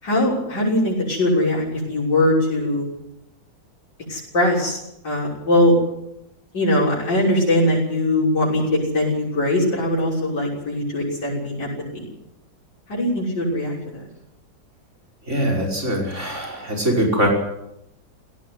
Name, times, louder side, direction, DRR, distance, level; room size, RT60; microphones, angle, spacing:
voice 1, 0.0-2.8 4.1-5.7 6.5-8.6 8.9-12.1 12.9-13.8, left 1 dB, 70° left, -6 dB, 7.2 m, -21 dB
voice 2, 15.3-17.3, equal, 40° right, 0 dB, 6.0 m, -22 dB
17.5 x 17.0 x 9.7 m, 0.84 s
omnidirectional pair, 2.0 m